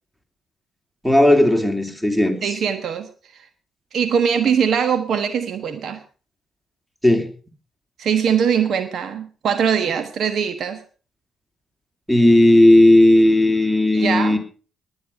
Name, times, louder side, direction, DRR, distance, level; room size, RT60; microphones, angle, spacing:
voice 1, 1.0-2.4 7.0-7.3 12.1-14.4, left 1 dB, 5° right, 7 dB, 3.2 m, -14 dB
voice 2, 2.4-3.5 3.9-6.0 8.0-10.8 13.9-14.4, right 7 dB, 50° right, 11 dB, 1.3 m, -22 dB
20.0 x 9.5 x 5.5 m, 0.40 s
figure-of-eight pair, 40°, 0 cm